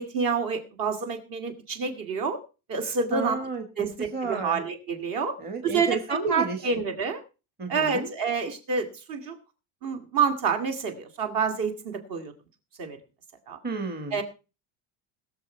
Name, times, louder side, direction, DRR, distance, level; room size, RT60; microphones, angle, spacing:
voice 1, 0.0-2.4 2.7-3.4 3.8-5.3 5.6-6.0 6.3-7.2 7.7-9.4 9.8-12.3 12.8-13.0 13.5-13.6 14.1-14.2, right 5 dB, 45° right, 6 dB, 2.5 m, -28 dB
voice 2, 3.1-3.6 4.0-4.6 5.4-6.7 7.6-8.1 13.6-14.2, right 4 dB, 20° right, 4 dB, 1.7 m, -31 dB
20.5 x 6.9 x 4.5 m, 0.32 s
cardioid pair, 175°, 45 cm